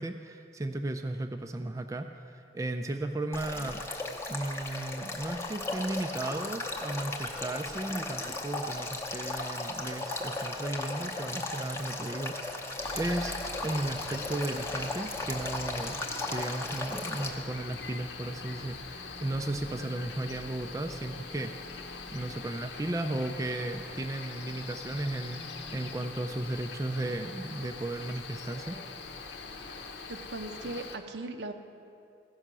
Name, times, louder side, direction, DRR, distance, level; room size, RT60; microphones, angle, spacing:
voice 1, 0.0-3.8 4.3-13.4 13.6-16.0 16.3-21.5 22.1-28.8, right 1 dB, 20° right, 5 dB, 0.3 m, -35 dB
Male speech man speaking / Stream / Trickle dribble, 3.3-17.3, left 2 dB, 15° left, 0.7 m, -36 dB
Cricket, 12.8-31.0, left 4 dB, 75° left, 0.8 m, -43 dB
voice 2, 30.1-31.5, right 2 dB, 75° right, 7 dB, 0.7 m, -39 dB
16.0 x 5.6 x 6.1 m, 2.5 s
head